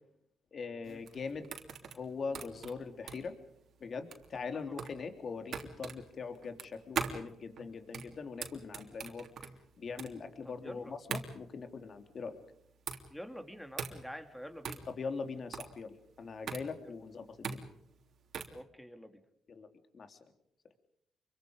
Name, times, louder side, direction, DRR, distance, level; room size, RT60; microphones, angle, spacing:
voice 1, 0.5-1.6 1.9-3.4 3.8-9.3 9.8-12.4 14.9-17.6 19.5-19.7 19.9-20.2, left 5 dB, 45° left, 7 dB, 3.2 m, -42 dB
sound 1, 0.8-18.6, right 6 dB, 60° right, 3.3 m, -42 dB
voice 2, 10.4-10.9 13.1-14.8 16.8-16.9 18.5-19.2, equal, 5° left, 7 dB, 3.2 m, -47 dB
28.0 x 23.5 x 5.3 m, 0.74 s
cardioid pair, 90°, 0 cm